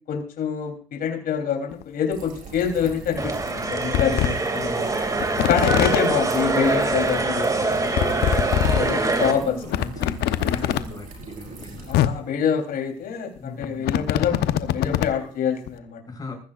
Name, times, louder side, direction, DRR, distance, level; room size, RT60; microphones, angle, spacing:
voice 1, 0.1-4.9 5.5-8.0 8.7-9.7 11.9-16.0, left 7 dB, 60° left, 3 dB, 3.6 m, -26 dB
sound 1, 1.7-1.8 2.9-3.0 3.5-3.6 3.9-4.3 5.2-6.0 7.1-7.2 7.4-7.5 7.9-8.8 9.2-9.3 9.7-10.8 11.6-11.7 11.9-12.1 13.4-15.1 15.7-15.8, left 12 dB, 75° left, 1.0 m, -22 dB
sound 2, 2.1-11.9, right 4 dB, 55° right, 4.8 m, -41 dB
sound 3, 3.2-9.3, right 3 dB, 20° right, 2.5 m, -24 dB
voice 2, 3.7-5.4 8.0-11.9 13.4-14.0 16.1-16.3, left 3 dB, 20° left, 2 dB, 5.8 m, -37 dB
20.0 x 14.5 x 2.5 m, 0.41 s
cardioid pair, 110°, 17 cm